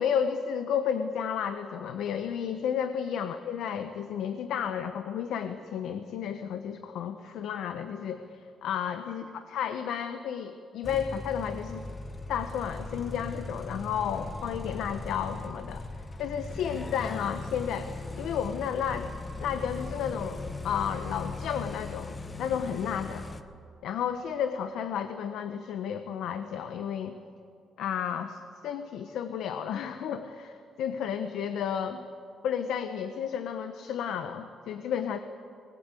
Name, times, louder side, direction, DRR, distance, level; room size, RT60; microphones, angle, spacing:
voice 1, 0.0-11.8 12.3-15.8 16.2-19.1 19.4-23.3 23.8-27.1 27.8-32.0 32.4-35.2, left 8 dB, 80° left, 9 dB, 1.1 m, -32 dB
sound 1, 10.8-23.4, left 3 dB, 25° left, 1.2 m, -39 dB
23.5 x 20.5 x 8.4 m, 2.5 s
cardioid pair, 120°, 0 cm